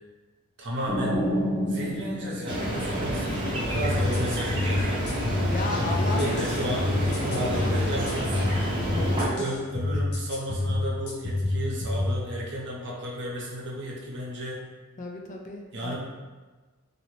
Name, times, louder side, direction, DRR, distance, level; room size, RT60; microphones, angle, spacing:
voice 1, 0.6-1.3 1.6-5.0 6.2-8.4 9.2-14.6 15.7-16.0, right 1 dB, 55° right, -4 dB, 0.7 m, -33 dB
sound 1, 0.9-3.7, equal, 10° left, 1.0 m, -29 dB
sound 2, 2.5-9.3, equal, 25° right, 0.7 m, -29 dB
sound 3, 3.7-12.2, left 2 dB, 85° left, 0.8 m, -28 dB
voice 2, 5.5-6.5 7.3-7.9 8.9-9.5 15.0-16.0, left 2 dB, 35° left, 1 dB, 0.4 m, -34 dB
2.8 x 2.7 x 3.0 m, 1.3 s
head